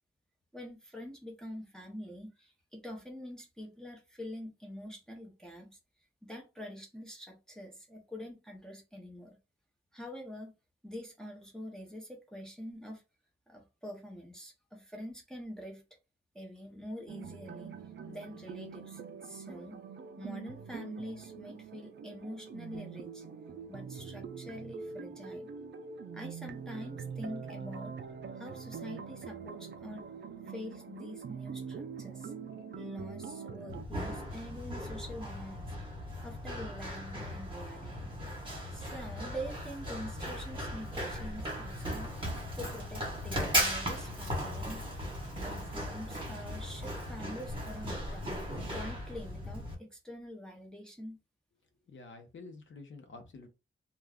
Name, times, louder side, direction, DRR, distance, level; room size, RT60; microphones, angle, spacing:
voice 1, 0.5-5.8 6.2-9.4 9.9-10.5 10.8-13.0 13.5-15.8 16.3-17.8 18.1-19.8 20.2-23.2 23.7-25.5 26.1-27.9 28.4-30.1 30.4-32.3 32.7-35.7 36.2-38.1 38.7-42.1 42.6-44.8 45.4-48.3 48.7-51.2, equal, 5° left, 0.6 m, -45 dB
sound 1, 17.1-33.8, right 6 dB, 60° right, 0.4 m, -44 dB
Run, 33.7-49.7, equal, 25° right, 1.2 m, -37 dB
voice 2, 51.9-53.5, left 3 dB, 65° left, 0.7 m, -49 dB
2.3 x 2.2 x 3.4 m
wide cardioid pair, 155°, 21 cm